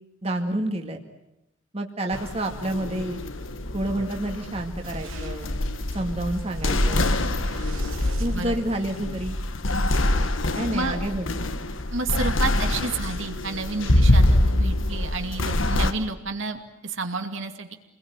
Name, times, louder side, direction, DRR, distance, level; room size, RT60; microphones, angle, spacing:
voice 1, 0.2-1.0 1.7-3.2 3.7-5.5 5.9-7.1 8.2-9.4 10.5-11.4, right 1 dB, 30° right, 3 dB, 2.1 m, -29 dB
sound 1, 2.1-15.9, left 1 dB, 75° left, 1.6 m, -25 dB
Boom, 4.8-9.2, right 2 dB, 90° right, 3.2 m, -42 dB
voice 2, 11.9-17.7, right 3 dB, 70° right, 5 dB, 2.5 m, -30 dB
29.0 x 21.0 x 9.1 m, 0.88 s
head